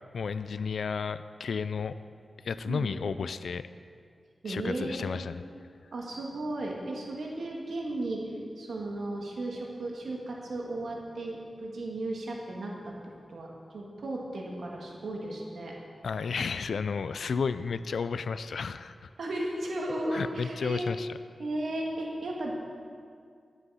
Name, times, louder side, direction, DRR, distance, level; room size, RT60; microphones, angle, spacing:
voice 1, 0.1-1.9 2.4-3.7 4.5-5.4 16.0-19.1 20.1-21.1, left 5 dB, 85° left, 13 dB, 0.3 m, -32 dB
voice 2, 4.4-5.2 5.9-12.9 13.3-15.7 19.2-20.9 21.4-22.6, right 1 dB, 80° right, -2 dB, 1.8 m, -35 dB
10.5 x 8.0 x 5.6 m, 2.2 s
cardioid pair, 65°, 0 cm